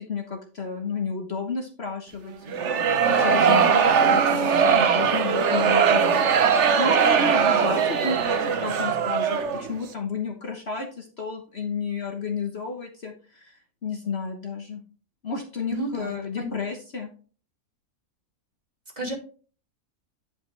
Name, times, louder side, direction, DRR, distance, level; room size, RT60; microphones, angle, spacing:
voice 1, 0.0-2.7 3.1-6.2 6.5-14.8 15.2-17.1, left 5 dB, 45° left, 3 dB, 1.3 m, -32 dB
sound 1, 2.5-9.7, right 6 dB, 55° right, 1.1 m, -20 dB
voice 2, 15.7-16.5 19.0-19.1, right 2 dB, 25° right, 0 dB, 2.5 m, -32 dB
10.5 x 5.7 x 3.2 m, 0.38 s
omnidirectional pair, 1.6 m